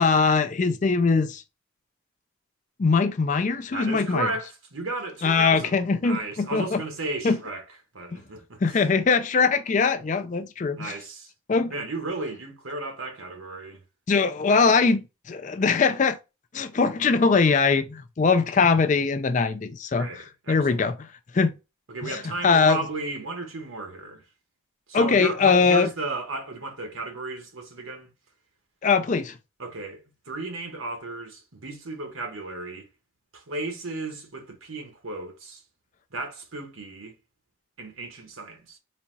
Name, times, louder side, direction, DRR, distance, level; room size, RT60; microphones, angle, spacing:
voice 1, 0.0-1.4 2.8-4.3 5.2-6.8 7.2-7.4 8.1-8.2 8.6-11.0 11.5-11.7 14.1-16.2 16.5-21.1 21.3-21.5 22.0-22.8 24.9-25.9 28.8-29.4, left 4 dB, 35° left, 0.4 m, -22 dB
voice 2, 3.7-7.6 7.9-8.8 10.8-11.3 11.7-13.8 14.5-14.9 20.0-20.9 21.9-24.2 24.9-28.1 29.6-32.9 33.3-35.6 36.1-37.1 37.8-38.8, right 2 dB, 90° right, 1.3 m, -34 dB
4.1 x 2.4 x 3.9 m
head